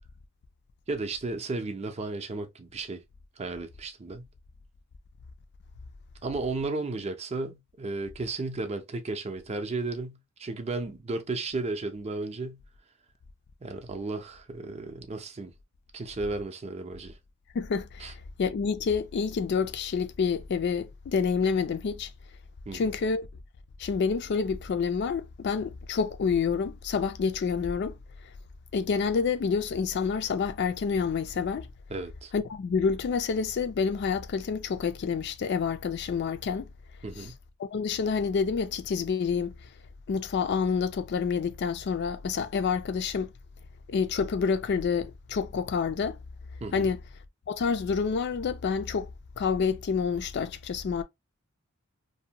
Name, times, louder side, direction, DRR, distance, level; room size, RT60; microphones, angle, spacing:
voice 1, 0.9-3.0 3.4-4.2 6.2-12.6 13.6-15.5 15.9-17.2 18.0-18.1 22.7-22.9 31.9-32.3 37.0-37.3 46.6-46.9, right 3 dB, 30° right, 0.5 m, -34 dB
voice 2, 17.5-18.1 18.4-22.1 22.7-23.3 23.8-28.0 28.7-31.7 32.3-36.7 37.2-37.3 37.6-39.5 40.1-43.3 43.9-46.2 46.7-47.0 47.5-49.1 49.4-51.0, left 5 dB, 55° left, 0.3 m, -28 dB
2.7 x 2.1 x 2.7 m
head